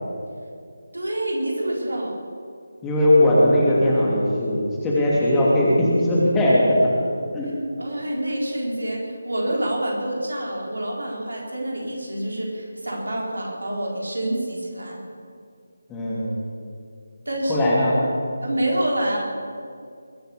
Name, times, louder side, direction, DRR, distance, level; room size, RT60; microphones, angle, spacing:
voice 1, 0.9-2.2 7.8-15.0 17.3-17.7 18.4-19.2, right 1 dB, 70° right, -1 dB, 4.3 m, -27 dB
voice 2, 2.8-6.9 7.3-7.5 15.9-16.3 17.5-17.9, left 1 dB, 10° left, -7 dB, 2.9 m, -19 dB
21.5 x 9.0 x 7.0 m, 2.3 s
figure-of-eight pair, 155°, 0 cm